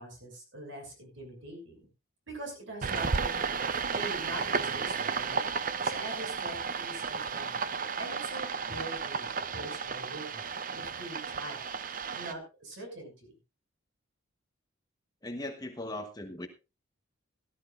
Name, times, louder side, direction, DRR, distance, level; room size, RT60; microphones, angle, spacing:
voice 1, 0.0-1.9 2.3-3.5 3.9-11.8 12.2-13.3, right 1 dB, 60° right, 2 dB, 6.4 m, -43 dB
sound 1, 2.8-12.3, right 5 dB, 40° right, 0.6 m, -33 dB
voice 2, 15.2-16.5, left 1 dB, 20° left, 6 dB, 1.1 m, -38 dB
18.0 x 12.0 x 2.5 m, 0.29 s
head